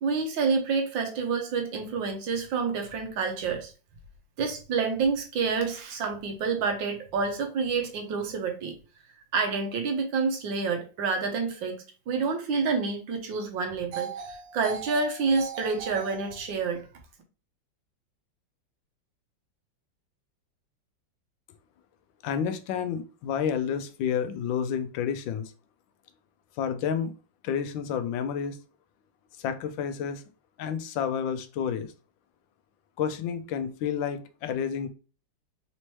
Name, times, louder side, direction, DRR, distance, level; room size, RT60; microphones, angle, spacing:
voice 1, 0.0-3.7 4.4-8.7 9.3-16.9, right 4 dB, 80° right, 1.6 m, -28 dB
voice 2, 22.2-25.5 26.6-27.1 27.4-28.6 29.4-30.2 30.6-31.9 33.0-34.9, left 7 dB, 80° left, 1.3 m, -30 dB
4.1 x 2.9 x 3.0 m
omnidirectional pair, 2.1 m